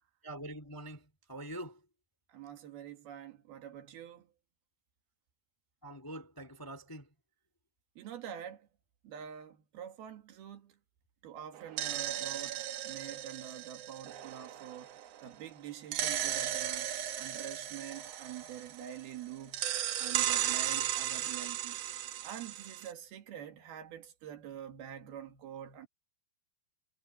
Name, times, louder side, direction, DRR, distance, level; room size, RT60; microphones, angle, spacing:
voice 1, 0.2-1.9 5.8-7.1, right 1 dB, 10° left, 1.0 m, -45 dB
voice 2, 2.3-4.3 8.0-8.7 9.0-10.8 11.2-16.9 17.2-19.7 20.0-21.8 22.2-25.9, right 10 dB, 90° right, 4.0 m, -46 dB
sound 1, 11.5-15.2 15.9-19.1 19.5-22.9, right 11 dB, 75° right, 1.5 m, -36 dB
omnidirectional pair, 4.3 m